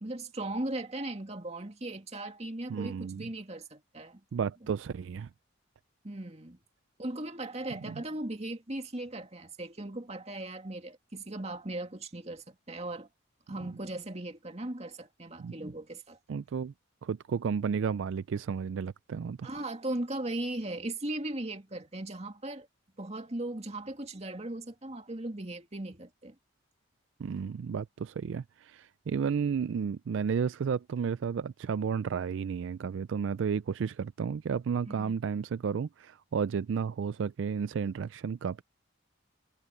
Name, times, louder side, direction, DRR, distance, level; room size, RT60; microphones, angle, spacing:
voice 1, 0.0-4.2 4.6-4.7 6.0-6.6 7.0-13.1 13.5-16.2 19.4-22.7 23.0-26.4 34.8-35.2, right 1 dB, 30° right, 2.3 m, -38 dB
voice 2, 2.7-3.3 4.3-5.3 7.8-7.9 15.4-15.5 16.3-16.7 17.0-19.5 27.2-38.6, right 6 dB, 70° right, 0.3 m, -32 dB
head